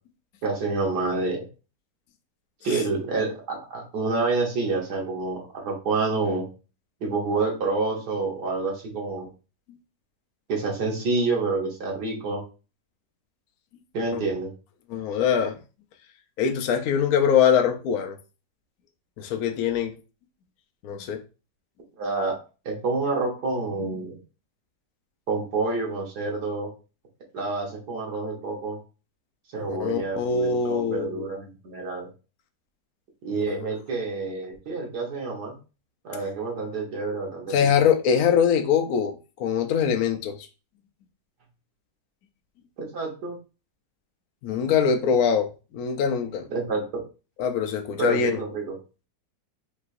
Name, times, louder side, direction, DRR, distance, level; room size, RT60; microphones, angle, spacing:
voice 1, 0.4-1.4 2.6-6.4 7.0-9.3 10.5-12.4 13.9-14.5 22.0-22.4 22.7-24.2 25.3-26.7 27.3-28.8 29.5-32.1 33.2-35.6 36.0-37.7 42.8-43.4 46.5-46.8 48.0-48.8, right 3 dB, 65° right, 1.8 m, -28 dB
voice 2, 14.9-15.6 16.4-18.2 19.2-19.9 20.8-21.2 29.7-31.3 33.4-33.8 37.5-40.3 44.4-45.5 45.7-46.4 47.4-48.4, left 7 dB, 70° left, 0.9 m, -23 dB
5.2 x 3.3 x 2.5 m
omnidirectional pair, 1.9 m